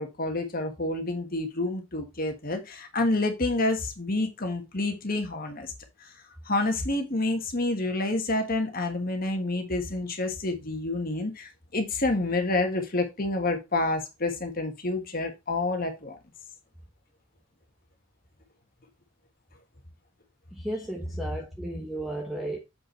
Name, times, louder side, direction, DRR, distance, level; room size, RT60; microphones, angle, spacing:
voice 1, 0.0-5.7 6.0-6.1 6.5-16.2, left 2 dB, 40° left, 1.5 m, -28 dB
voice 2, 20.5-22.6, right 1 dB, ahead, 1.0 m, -34 dB
7.4 x 5.5 x 4.4 m
head